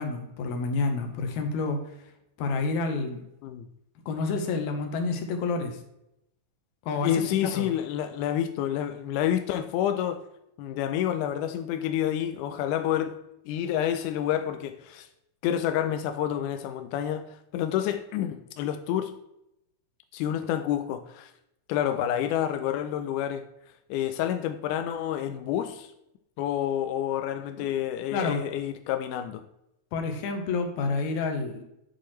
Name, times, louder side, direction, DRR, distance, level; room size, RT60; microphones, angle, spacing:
voice 1, 0.0-1.8 2.4-3.2 4.1-5.8 6.9-7.7 27.6-27.7 28.1-28.4 29.9-31.6, left 3 dB, 75° left, 2.3 m, -29 dB
voice 2, 7.0-10.2 10.6-13.2 13.5-15.1 15.4-19.1 20.1-21.3 21.7-23.5 23.9-25.9 26.4-29.5, left 10 dB, 90° left, 2.1 m, -28 dB
8.3 x 6.3 x 3.0 m
omnidirectional pair, 3.5 m